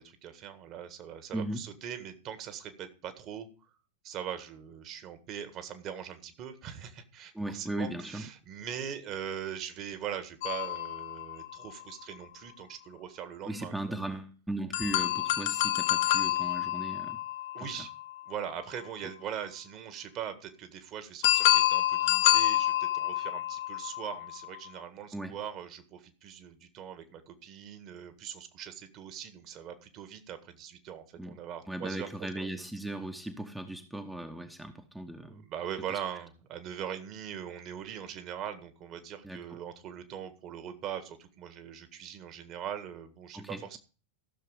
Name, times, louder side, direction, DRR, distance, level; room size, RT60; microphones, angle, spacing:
voice 1, 0.0-3.5 4.0-14.0 17.5-17.9 18.3-32.7 35.3-43.8, right 9 dB, 35° right, 9 dB, 1.7 m, -41 dB
voice 2, 7.3-8.3 13.4-17.2 17.6-17.7 25.1-25.3 31.2-31.4 31.7-35.4 39.2-39.4 43.3-43.8, right 1 dB, 5° right, 6 dB, 1.0 m, -37 dB
sound 1, 10.4-12.1 14.7-18.6 21.2-24.7, left 14 dB, 50° left, 1.0 m, -28 dB
14.5 x 6.8 x 5.0 m, 0.36 s
figure-of-eight pair, 90°, 0 cm